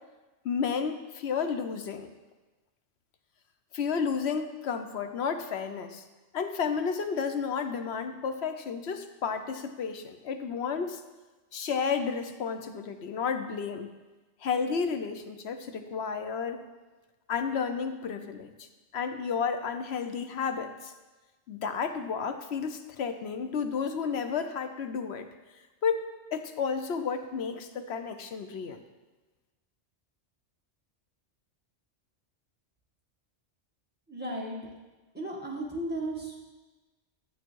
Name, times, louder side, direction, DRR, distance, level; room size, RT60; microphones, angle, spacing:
voice 1, 0.4-2.1 3.7-6.0 6.3-11.0 11.5-13.9 14.4-16.6 17.3-18.7 18.9-20.9 21.5-25.3 25.8-28.8, left 6 dB, 70° left, 7 dB, 1.0 m, -32 dB
voice 2, 34.1-34.6 35.1-36.4, right 1 dB, 10° right, -3 dB, 1.9 m, -34 dB
12.5 x 7.4 x 4.6 m, 1.2 s
omnidirectional pair, 1.2 m